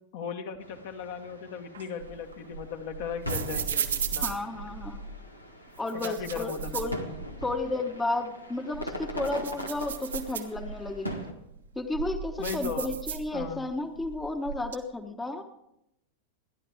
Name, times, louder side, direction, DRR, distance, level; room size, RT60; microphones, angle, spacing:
voice 1, 0.1-4.3 5.9-7.2 12.4-12.9 13.3-13.7, left 6 dB, 50° left, 6 dB, 1.5 m, -37 dB
Summer Fireworks on the Beach, 0.6-11.3, equal, 85° left, 1.7 m, -41 dB
Hair Tousle, 1.7-5.2 5.8-7.6 7.9-8.0 8.5-10.9 11.5-13.7 13.9-14.7, right 7 dB, 70° right, 1.2 m, -35 dB
voice 2, 4.2-5.0 5.8-7.0 7.4-11.2 11.8-15.4, left 2 dB, 10° left, 7 dB, 1.1 m, -32 dB
29.5 x 11.0 x 3.5 m, 0.83 s
figure-of-eight pair, 90°, 0 cm